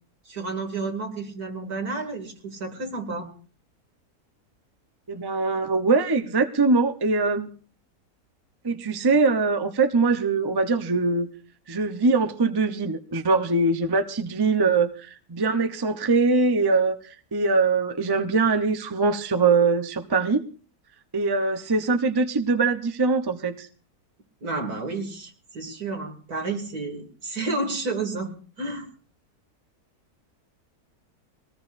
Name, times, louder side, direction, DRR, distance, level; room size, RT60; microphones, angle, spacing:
voice 1, 0.3-3.3 24.4-28.3 28.6-28.9, right 3 dB, 75° right, 2 dB, 3.1 m, -31 dB
voice 2, 5.1-7.5 8.6-11.3 11.7-20.4 21.1-23.7, right 4 dB, 20° right, 8 dB, 0.7 m, -22 dB
22.5 x 18.5 x 2.6 m, 0.40 s
omnidirectional pair, 1.6 m